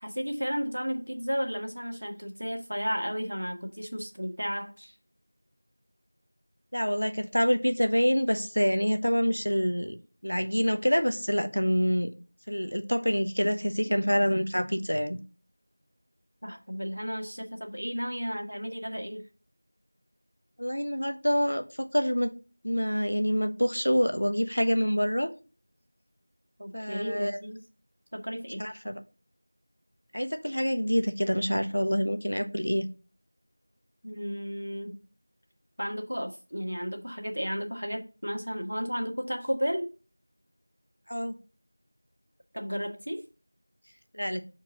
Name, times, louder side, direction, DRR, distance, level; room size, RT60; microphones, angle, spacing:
voice 1, 0.0-4.9 16.4-19.2 26.6-27.6 28.1-28.6 34.0-35.0 35.8-39.9 42.5-43.2, equal, 70° right, 1.4 m, -33 dB
voice 2, 6.7-10.0 10.2-12.1 12.5-15.2 20.6-22.3 22.6-25.3 26.7-27.4 28.6-29.0 30.1-32.8 41.1-41.3 44.1-44.4, equal, 75° left, 0.9 m, -26 dB
6.2 x 4.5 x 3.8 m
figure-of-eight pair, 180°, 0 cm